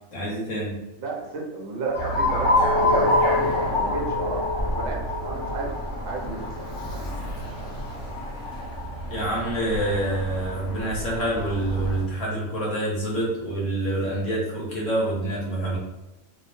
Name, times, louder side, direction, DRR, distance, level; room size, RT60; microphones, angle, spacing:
voice 1, 0.1-0.8 9.1-15.8, right 1 dB, 70° left, -4 dB, 1.2 m, -27 dB
voice 2, 1.0-4.4 4.7-5.7 6.0-6.5, right 3 dB, 65° right, -1 dB, 0.8 m, -32 dB
Alarm, 1.9-12.0, left 1 dB, 45° left, 0.9 m, -27 dB
Chink clink, 2.6-7.7, left 3 dB, 15° left, 0.8 m, -31 dB
2.7 x 2.0 x 3.0 m, 0.96 s
omnidirectional pair, 1.4 m